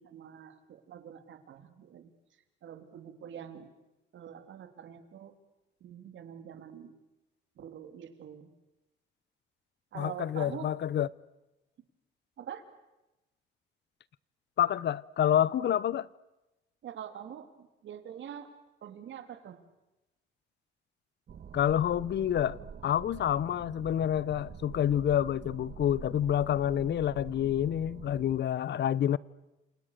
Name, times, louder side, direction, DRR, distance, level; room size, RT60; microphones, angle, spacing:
voice 1, 0.0-3.7 4.1-5.3 5.8-6.9 7.6-8.5 9.9-10.7 12.4-12.6 16.8-18.5 18.8-19.6, right 9 dB, 70° right, 3.2 m, -45 dB
voice 2, 10.0-11.1 14.6-16.1 21.5-29.2, left 10 dB, 60° left, 0.9 m, -28 dB
sound 1, 21.3-28.4, right 7 dB, 55° right, 1.8 m, -46 dB
30.0 x 27.5 x 6.7 m
cardioid pair, 90°, 20 cm